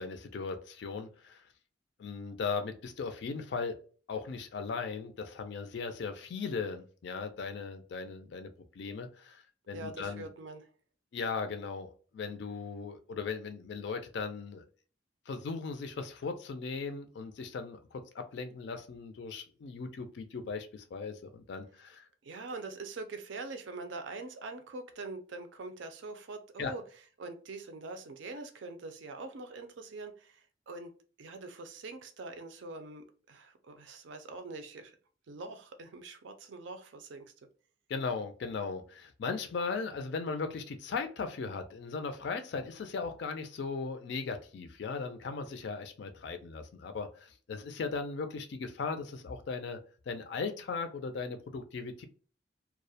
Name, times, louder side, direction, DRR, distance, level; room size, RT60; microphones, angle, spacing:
voice 1, 0.0-1.4 2.0-3.8 4.1-10.3 11.1-14.6 15.3-22.1 26.6-26.7 37.9-49.8 50.1-52.0, left 4 dB, 60° left, 8 dB, 0.3 m, -38 dB
voice 2, 9.7-10.7 22.2-26.8 27.2-30.9 31.2-35.0 35.3-37.3, right 3 dB, 70° right, 7 dB, 0.4 m, -44 dB
2.3 x 2.0 x 2.6 m, 0.40 s
head